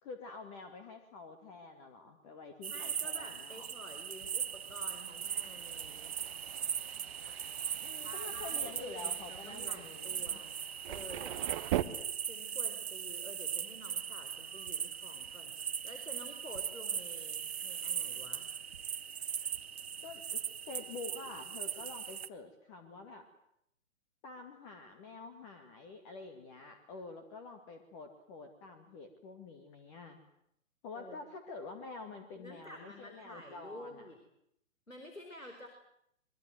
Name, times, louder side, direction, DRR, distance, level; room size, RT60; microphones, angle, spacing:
voice 1, 0.0-3.7 7.8-10.4 20.0-20.4 20.7-23.3 24.2-30.2 30.8-34.1, left 4 dB, 25° left, 7 dB, 2.3 m, -48 dB
sound 1, 2.6-22.3, right 8 dB, 50° right, 1.1 m, -39 dB
voice 2, 2.7-6.1 8.0-10.6 10.9-11.4 12.2-18.5 30.9-31.2 32.3-34.2 34.9-35.7, equal, 90° left, 5 dB, 4.4 m, -50 dB
Thunder, 3.7-11.8, right 15 dB, 20° right, 1.0 m, -43 dB
25.0 x 23.0 x 7.9 m, 0.76 s
figure-of-eight pair, 125°, 39 cm